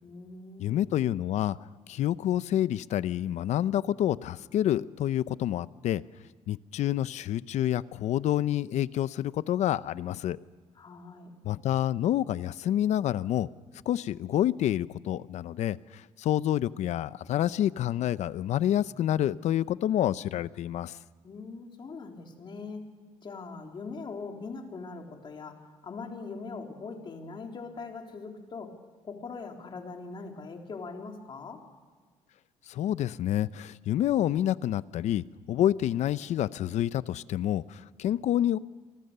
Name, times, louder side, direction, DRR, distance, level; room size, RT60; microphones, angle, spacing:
voice 1, 0.0-0.9 10.8-11.3 21.2-22.8 23.2-25.6 25.8-28.7 29.0-31.6, left 4 dB, 40° left, 2 dB, 3.6 m, -41 dB
voice 2, 0.6-1.6 1.9-6.0 6.5-10.4 11.4-13.5 13.9-21.0 32.7-38.6, left 12 dB, 70° left, 16 dB, 0.7 m, -28 dB
27.5 x 24.0 x 6.8 m, 1.4 s
cardioid pair, 120°, 12 cm